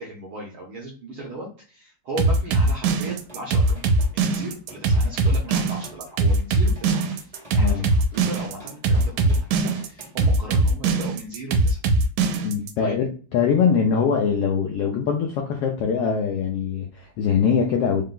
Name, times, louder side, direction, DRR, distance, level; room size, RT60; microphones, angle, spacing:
voice 1, 0.0-7.3 7.5-11.8 12.8-13.0, right 1 dB, 70° right, -2 dB, 1.3 m, -37 dB
sound 1, 2.2-12.7, right 3 dB, 90° right, 2.0 m, -20 dB
sound 2, 3.1-10.3, right 1 dB, 35° right, 0.5 m, -47 dB
voice 2, 12.4-13.1 13.3-18.0, left 6 dB, 80° left, 1 dB, 1.3 m, -22 dB
4.6 x 2.2 x 3.8 m, 0.38 s
omnidirectional pair, 3.3 m